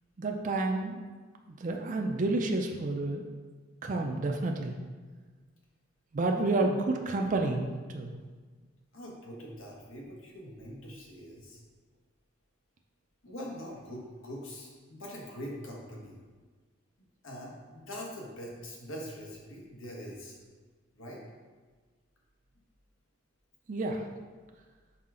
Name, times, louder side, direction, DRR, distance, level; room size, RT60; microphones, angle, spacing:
voice 1, 0.2-1.0 1.5-3.2 3.8-4.7 6.1-8.1 23.7-24.1, right 2 dB, 40° right, 3 dB, 0.4 m, -30 dB
voice 2, 8.9-11.6 13.2-16.2 17.2-20.4 20.9-21.2, equal, 85° left, -2 dB, 1.4 m, -43 dB
5.7 x 4.8 x 3.7 m, 1.4 s
head